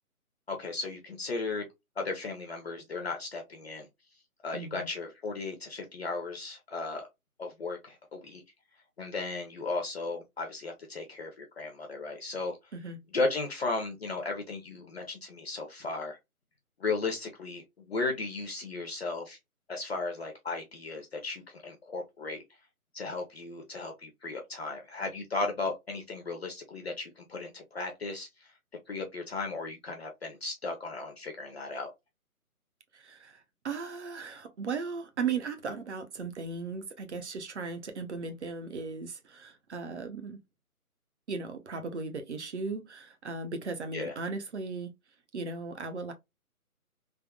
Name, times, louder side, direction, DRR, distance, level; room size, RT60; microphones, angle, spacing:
voice 1, 0.5-1.6 2.0-3.9 4.4-7.1 7.4-8.4 9.0-12.6 13.1-16.2 16.8-19.4 19.7-22.4 22.9-28.3 28.9-31.9 43.9-44.1, left 3 dB, 45° left, 0.7 m, -35 dB
voice 2, 4.5-4.9 12.7-13.0 32.9-40.4 41.3-44.9 45.3-46.1, right 4 dB, 50° right, 0.7 m, -37 dB
3.5 x 2.0 x 2.2 m
hypercardioid pair, 160°, 44 cm